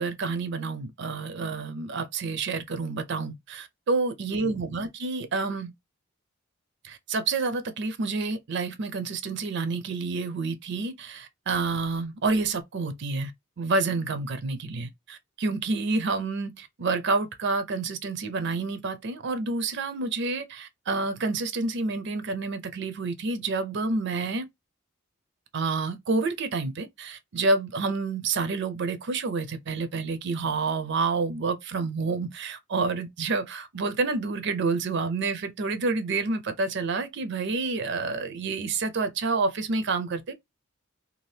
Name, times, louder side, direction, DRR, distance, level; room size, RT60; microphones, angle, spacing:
voice 1, 0.0-5.7 6.8-13.3 13.6-24.4 25.5-40.3, right 3 dB, 60° right, 0.5 m, -28 dB
2.7 x 2.4 x 3.2 m
head